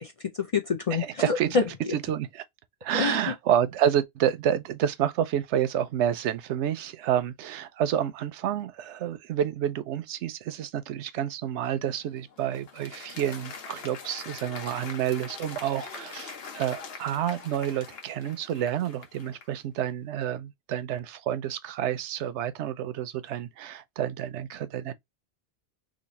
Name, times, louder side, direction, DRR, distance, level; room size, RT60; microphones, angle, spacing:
voice 1, 0.0-2.0 3.0-3.3, left 5 dB, 45° left, 0.5 m, -28 dB
voice 2, 0.9-1.5 1.9-2.4 2.8-24.9, right 10 dB, 85° right, 0.9 m, -29 dB
Applause, 12.0-19.6, left 5 dB, 65° left, 1.0 m, -43 dB
3.1 x 2.5 x 3.9 m
omnidirectional pair, 1.1 m